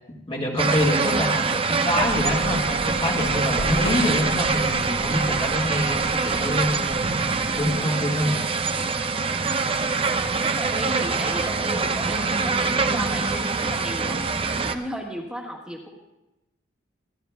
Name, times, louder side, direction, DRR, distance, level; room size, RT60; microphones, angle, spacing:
voice 1, 0.3-7.2 7.5-8.4, left 1 dB, 30° left, -2 dB, 1.6 m, -26 dB
sound 1, 0.6-14.7, right 4 dB, 30° right, 0.5 m, -24 dB
sound 2, 2.0-7.7, left 1 dB, 50° left, 1.7 m, -35 dB
voice 2, 10.5-14.2 14.5-15.9, equal, 5° right, -3 dB, 1.5 m, -35 dB
26.0 x 12.0 x 2.3 m, 0.97 s
head